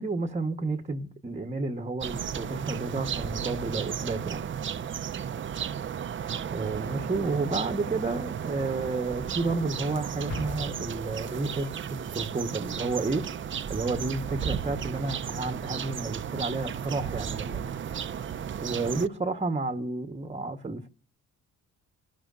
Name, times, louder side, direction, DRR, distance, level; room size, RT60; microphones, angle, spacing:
voice 1, 0.0-4.4 6.4-13.3 13.7-17.6 18.6-20.9, right 3 dB, 20° right, 1.2 m, -31 dB
sound 1, 2.0-19.1, right 8 dB, 40° right, 0.6 m, -34 dB
Explosion, 10.3-11.9, left 2 dB, 60° left, 3.5 m, -39 dB
27.5 x 12.5 x 2.5 m
cardioid pair, 90°, 30 cm